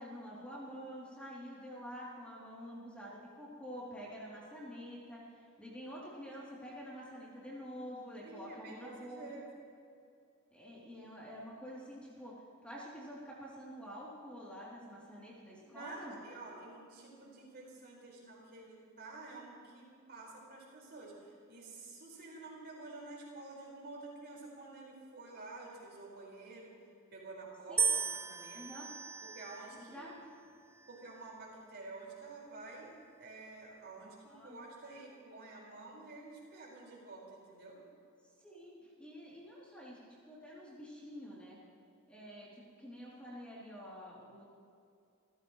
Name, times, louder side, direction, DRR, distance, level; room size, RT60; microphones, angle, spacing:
voice 1, 0.0-9.4 10.5-16.2 16.5-16.6 27.7-27.9 28.5-28.9 29.7-30.1 34.0-34.6 38.4-41.6 42.1-44.4, equal, 5° left, -7 dB, 3.2 m, -48 dB
voice 2, 8.2-9.4 15.7-26.7 27.1-28.6 29.2-30.1 30.9-32.9 33.2-37.8, right 3 dB, 50° right, -4 dB, 5.2 m, -50 dB
sound 1, 27.8-30.0 30.8-31.3, right 6 dB, 10° right, 0.3 m, -36 dB
27.5 x 16.0 x 3.2 m, 2.4 s
head